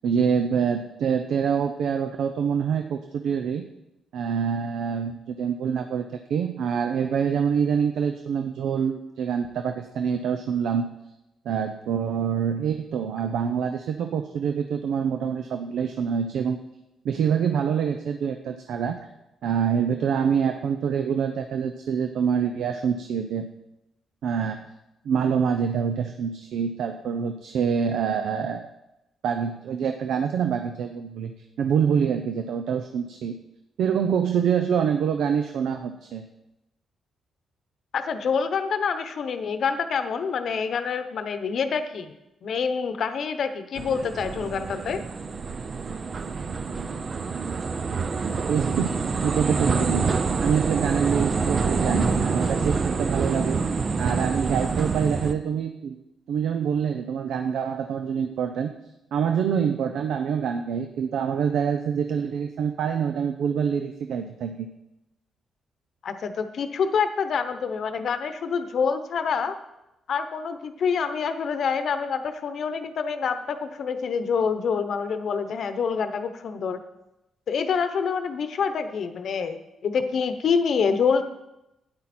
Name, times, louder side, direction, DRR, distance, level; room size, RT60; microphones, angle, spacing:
voice 1, 0.0-3.6 4.1-10.9 11.4-16.6 17.0-19.0 19.4-23.4 24.2-24.6 25.0-28.7 29.2-31.3 31.6-33.4 33.8-36.2 48.2-50.1 50.4-53.6 54.0-56.0 56.3-58.7 59.1-64.7, right 7 dB, 80° right, 6 dB, 0.7 m, -26 dB
voice 2, 37.9-42.1 42.4-45.0 66.0-69.6 70.1-76.8 77.5-81.2, left 6 dB, 55° left, 9 dB, 0.9 m, -26 dB
sound 1, 43.8-55.3, right 4 dB, 35° right, 0.6 m, -26 dB
12.5 x 9.7 x 4.4 m, 0.92 s
cardioid pair, 145°, 0 cm